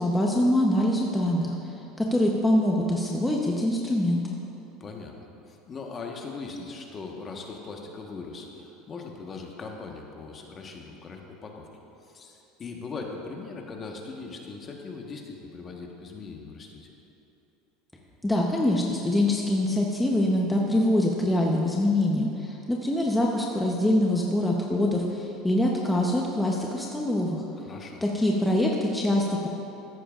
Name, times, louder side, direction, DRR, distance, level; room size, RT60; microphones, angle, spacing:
voice 1, 0.0-4.4 18.2-27.4 28.0-29.5, left 1 dB, 5° left, -2 dB, 0.9 m, -24 dB
voice 2, 4.8-11.7 12.0-16.9 27.6-28.0, left 4 dB, 30° left, 1 dB, 1.3 m, -40 dB
14.0 x 11.0 x 2.5 m, 2.9 s
supercardioid pair, 115°, 0 cm